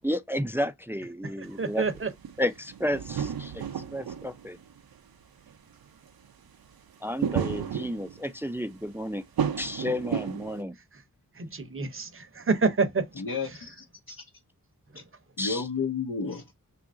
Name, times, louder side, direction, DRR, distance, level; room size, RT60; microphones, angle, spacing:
voice 1, 0.0-1.8 2.4-4.6 7.0-9.2 9.6-10.7 15.4-15.6, left 1 dB, 5° right, 0.3 m, -32 dB
voice 2, 1.2-2.1 10.7-11.0 11.3-13.6 14.9-15.1, right 4 dB, 35° right, 0.7 m, -29 dB
sound 1, 1.5-1.6 1.8-4.9 5.5-5.6 5.8-6.0 7.2-8.4 9.4-10.6, right 8 dB, 85° right, 0.5 m, -32 dB
voice 3, 13.2-14.2 15.4-16.5, left 5 dB, 70° left, 0.7 m, -32 dB
2.8 x 2.5 x 3.6 m
wide cardioid pair, 60°, 36 cm